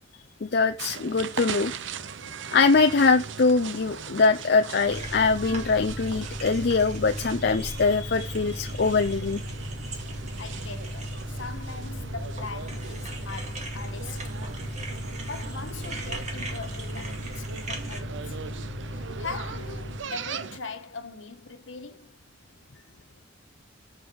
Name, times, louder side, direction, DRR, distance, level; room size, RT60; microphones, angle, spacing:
voice 1, 0.4-1.7 2.5-9.4, left 4 dB, 55° left, 0.5 m, -23 dB
sound 1, 0.8-20.6, right 5 dB, 65° right, 0.7 m, -40 dB
sound 2, 4.8-18.0, right 2 dB, 35° right, 2.2 m, -42 dB
sound 3, 4.9-20.0, equal, 20° left, 1.9 m, -37 dB
voice 2, 10.4-14.8 15.3-18.6 18.9-22.2, left 4 dB, 70° left, 1.4 m, -41 dB
7.0 x 6.8 x 7.7 m
head